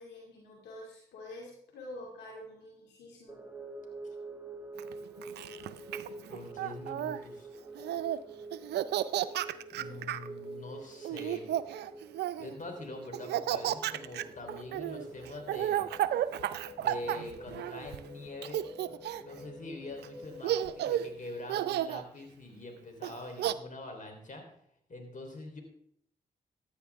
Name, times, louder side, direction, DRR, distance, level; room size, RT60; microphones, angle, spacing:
voice 1, 0.0-3.4 9.7-10.2, left 1 dB, 85° left, -2 dB, 2.3 m, -47 dB
sound 1, 3.3-21.1, right 2 dB, 5° right, 1.5 m, -47 dB
Laughter, 4.8-7.2 7.8-8.2 8.5-10.3 11.1-12.6 13.1-18.0 18.4-19.4 20.0-20.1 20.4-21.1 21.5-22.0 23.0-23.5, right 12 dB, 80° right, 0.5 m, -33 dB
voice 2, 6.3-7.5 9.7-11.5 12.4-15.9 16.8-24.5 24.9-25.6, left 2 dB, 50° left, 4 dB, 3.5 m, -44 dB
14.5 x 9.9 x 3.5 m, 0.67 s
supercardioid pair, 40°, 17 cm